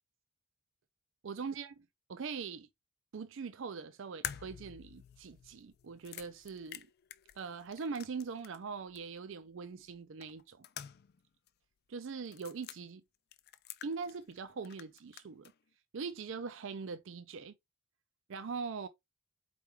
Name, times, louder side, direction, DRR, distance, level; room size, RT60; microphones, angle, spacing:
voice 1, 1.2-2.7 3.1-6.9 7.4-10.6 11.9-13.0 13.8-15.5 15.9-17.5 18.3-18.9, right 5 dB, 60° right, 0.4 m, -42 dB
Cracking Eggs Into a Bowl, 4.2-8.7 9.0-9.1 10.2-11.2 11.5-11.6 12.3-12.8 13.3-14.4 14.6-15.5, left 11 dB, 45° left, 0.3 m, -47 dB
4.5 x 3.4 x 3.3 m
head